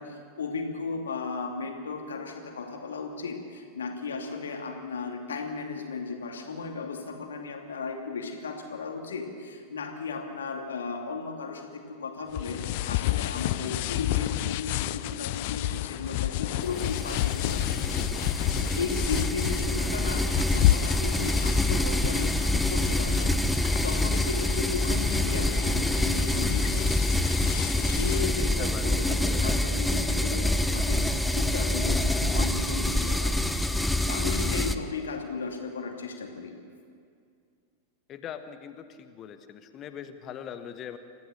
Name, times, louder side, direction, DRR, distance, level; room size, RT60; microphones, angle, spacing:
voice 1, 0.0-23.4 23.8-27.1 27.7-33.8 34.1-36.5, left 4 dB, 65° left, 3 dB, 2.6 m, -35 dB
sound 1, 12.3-28.3, left 17 dB, 50° left, 0.5 m, -30 dB
sound 2, 16.6-34.7, left 1 dB, 5° left, 0.9 m, -26 dB
voice 2, 28.4-29.6 38.1-41.0, left 8 dB, 30° left, 9 dB, 1.4 m, -42 dB
28.0 x 14.5 x 6.7 m, 2.3 s
figure-of-eight pair, 90°, 0 cm